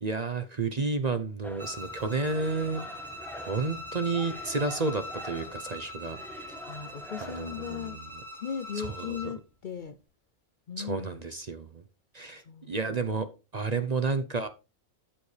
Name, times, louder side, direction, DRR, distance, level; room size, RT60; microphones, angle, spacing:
voice 1, 0.0-2.8 3.3-6.2 7.2-8.1 8.8-9.2 10.8-11.8 12.1-12.4 12.7-13.3 13.5-14.5, right 3 dB, 40° right, 0.7 m, -31 dB
sound 1, 1.4-7.9, equal, ahead, 1.3 m, -46 dB
Bowed string instrument, 1.6-9.4, left 1 dB, 20° right, 4.2 m, -42 dB
voice 2, 6.7-8.0 8.4-10.0 10.7-11.2 12.4-13.0, left 8 dB, 55° left, 0.6 m, -38 dB
13.5 x 7.2 x 3.3 m
omnidirectional pair, 1.4 m